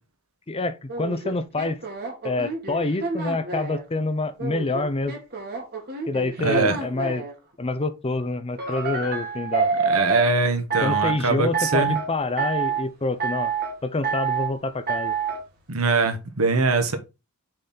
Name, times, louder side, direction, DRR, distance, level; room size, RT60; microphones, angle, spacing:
voice 1, 0.5-1.8 2.2-5.1 6.1-7.2 7.6-9.7 10.8-13.5 13.8-15.2, left 2 dB, 30° left, 0.7 m, -27 dB
sound 1, 0.9-3.8 4.4-7.3 8.6-10.2 10.7-11.2 11.5-12.1 12.4-12.8 13.2-13.7 14.0-14.5 14.9-15.4, right 5 dB, 50° right, 2.1 m, -27 dB
voice 2, 6.4-6.8 9.8-12.0 15.7-17.0, right 3 dB, 90° right, 1.3 m, -22 dB
6.5 x 4.1 x 4.2 m
head